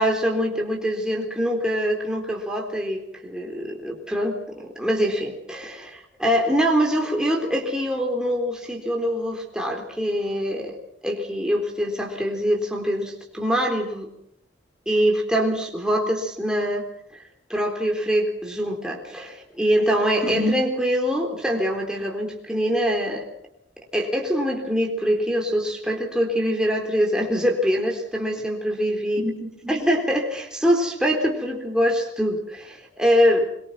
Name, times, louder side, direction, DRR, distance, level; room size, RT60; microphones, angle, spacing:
voice 1, 0.0-10.8 11.0-14.1 14.9-16.8 17.5-23.3 23.9-33.5, equal, 5° right, 0 dB, 3.8 m, -24 dB
23.5 x 23.0 x 6.2 m, 0.73 s
head